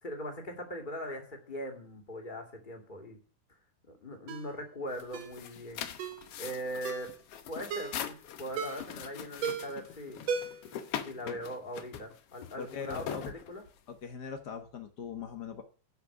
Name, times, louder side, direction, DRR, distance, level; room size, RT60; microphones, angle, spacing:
voice 1, 0.0-3.2 3.9-5.8 6.4-7.1 7.5-10.2 10.9-13.2 13.5-13.6, equal, 15° left, 2 dB, 2.1 m, -40 dB
Ringtone, 4.3-4.5 5.1-5.4 6.0-6.2 6.8-7.1 7.7-8.0 8.6-8.9 9.4-9.8 10.3-10.7 11.0-11.1, right 6 dB, 60° right, 2.3 m, -36 dB
sound 1, 4.9-14.0, left 9 dB, 65° left, 1.5 m, -42 dB
voice 2, 12.6-13.2 13.9-15.6, left 6 dB, 85° left, 6 dB, 0.9 m, -40 dB
10.5 x 5.7 x 8.2 m, 0.38 s
omnidirectional pair, 3.8 m